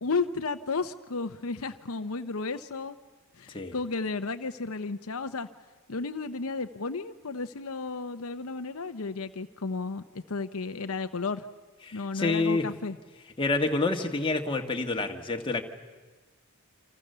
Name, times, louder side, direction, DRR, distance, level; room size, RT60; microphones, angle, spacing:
voice 1, 0.0-3.0 3.4-5.5 5.9-11.5 11.9-13.0, left 4 dB, 75° left, 9 dB, 0.8 m, -33 dB
voice 2, 11.8-12.7 13.4-15.6, left 3 dB, 25° left, 3 dB, 1.7 m, -28 dB
29.0 x 26.5 x 6.9 m, 1.3 s
head